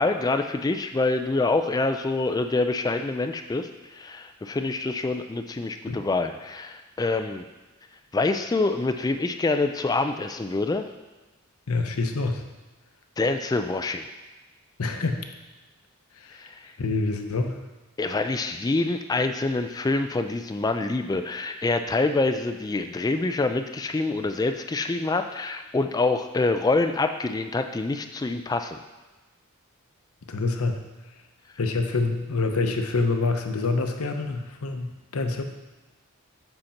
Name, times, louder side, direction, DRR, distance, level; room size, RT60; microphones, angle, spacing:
voice 1, 0.0-3.7 3.9-7.4 8.1-10.9 13.2-14.0 16.4-16.6 18.0-28.8, left 3 dB, 15° left, 7 dB, 0.3 m, -26 dB
voice 2, 11.7-12.4 14.8-15.3 16.2-16.4 16.8-17.6 30.3-30.8 31.6-35.4, left 3 dB, 90° left, 5 dB, 0.8 m, -26 dB
7.8 x 4.3 x 5.8 m, 1.2 s
head